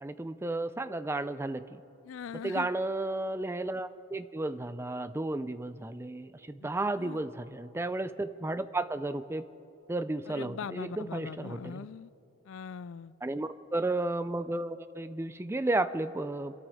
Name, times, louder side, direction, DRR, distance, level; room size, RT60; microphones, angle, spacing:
voice 1, 0.0-1.8 2.4-9.4 9.9-11.9 13.2-16.5, right 2 dB, 10° right, 12 dB, 0.4 m, -33 dB
voice 2, 2.0-2.7 6.6-6.7 6.9-7.2 10.3-12.1 12.5-13.1, left 6 dB, 65° left, 18 dB, 0.4 m, -41 dB
27.0 x 13.0 x 3.6 m, 3.0 s
head